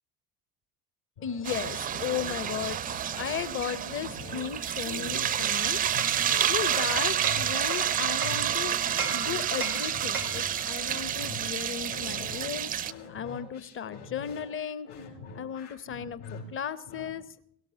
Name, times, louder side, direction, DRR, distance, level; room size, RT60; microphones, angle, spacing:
sound 1, 1.2-17.1, left 4 dB, 65° left, 3.3 m, -45 dB
voice 1, 1.2-5.8 6.5-8.8 9.1-14.9 15.3-17.2, left 8 dB, 30° left, 16 dB, 0.9 m, -35 dB
sound 2, 1.4-12.9, right 10 dB, 20° right, 0.4 m, -29 dB
Hammer, 6.0-8.5 9.0-10.5, right 4 dB, 90° right, 0.7 m, -38 dB
18.0 x 17.5 x 2.9 m, 0.70 s
figure-of-eight pair, 60°, 44 cm